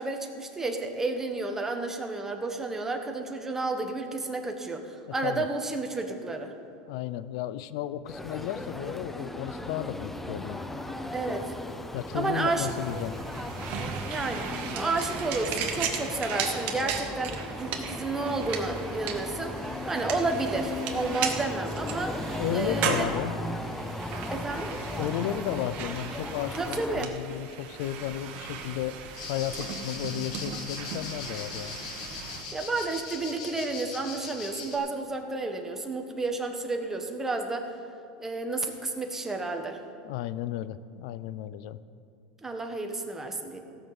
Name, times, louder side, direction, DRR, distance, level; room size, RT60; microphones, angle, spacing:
voice 1, 0.0-6.5 11.1-11.5 12.1-12.7 14.1-14.5 14.7-22.2 22.5-23.1 24.3-24.7 26.6-27.1 32.5-37.7 38.2-39.8 42.4-43.6, right 3 dB, 10° right, 4 dB, 1.3 m, -31 dB
voice 2, 6.9-10.6 11.9-13.1 22.4-23.3 25.0-29.0 29.3-31.8 40.0-41.8, left 12 dB, 70° left, 15 dB, 0.5 m, -33 dB
sound 1, 8.1-27.1, left 1 dB, 5° left, 0.7 m, -36 dB
sound 2, 12.7-32.4, right 6 dB, 55° right, 1.5 m, -37 dB
sound 3, 29.1-34.8, left 5 dB, 85° left, 2.1 m, -40 dB
16.5 x 6.1 x 7.0 m, 2.4 s
supercardioid pair, 125°, 4 cm